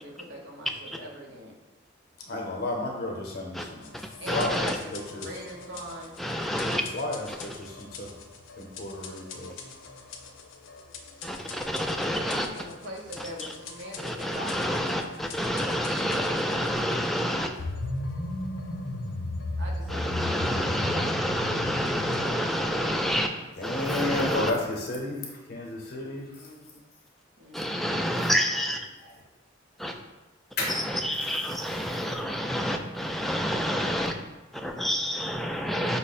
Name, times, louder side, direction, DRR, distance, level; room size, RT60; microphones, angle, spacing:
voice 1, 0.0-1.6 4.2-6.1 12.3-14.8 19.6-23.1 26.4-26.8 27.4-27.9, equal, 75° right, -1 dB, 1.0 m, -42 dB
voice 2, 2.3-3.9 4.3-5.3 6.9-8.1 8.6-9.5 23.6-26.3 30.6-30.8, left 2 dB, 55° left, 0 dB, 0.7 m, -32 dB
sound 1, 3.8-22.3, left 2 dB, 90° left, 0.5 m, -38 dB
voice 3, 3.9-4.8 6.2-6.8 7.3-7.5 11.2-12.5 13.2-13.3 14.0-17.5 19.9-23.3 23.6-24.5 27.5-28.8 29.8-29.9 30.7-34.1 34.5-36.0, equal, ahead, 3 dB, 0.3 m, -28 dB
5.6 x 2.1 x 4.1 m, 1.1 s
head